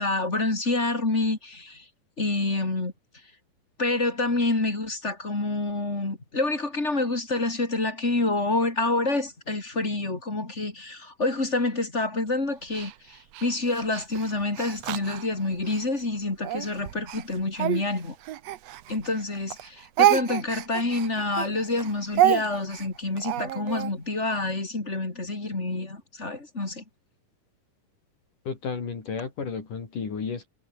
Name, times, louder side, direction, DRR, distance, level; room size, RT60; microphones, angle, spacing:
voice 1, 0.0-1.8 2.2-2.9 3.8-18.2 18.9-26.8, left 2 dB, 20° left, 3.8 m, -27 dB
Speech, 12.7-15.8 16.4-19.2 19.5-23.9, right 13 dB, 65° right, 1.8 m, -28 dB
voice 2, 28.5-30.5, left 5 dB, 65° left, 5.8 m, -32 dB
omnidirectional pair, 4.0 m